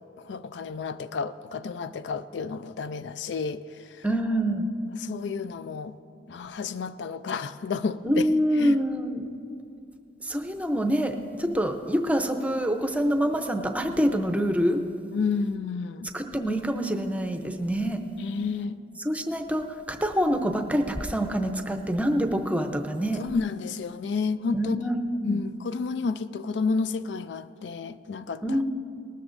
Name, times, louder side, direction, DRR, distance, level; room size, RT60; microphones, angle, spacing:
voice 1, 0.2-3.6 5.0-5.9 6.3-8.3 8.5-8.8 15.1-16.1 18.2-18.8 23.2-24.8 25.2-28.6, left 4 dB, 70° left, 14 dB, 0.4 m, -30 dB
voice 2, 4.0-4.7 8.0-9.3 10.2-14.8 16.1-18.0 19.0-23.2 24.5-25.4 28.4-28.7, equal, 10° right, 5 dB, 0.6 m, -26 dB
19.0 x 13.0 x 2.6 m, 2.6 s
head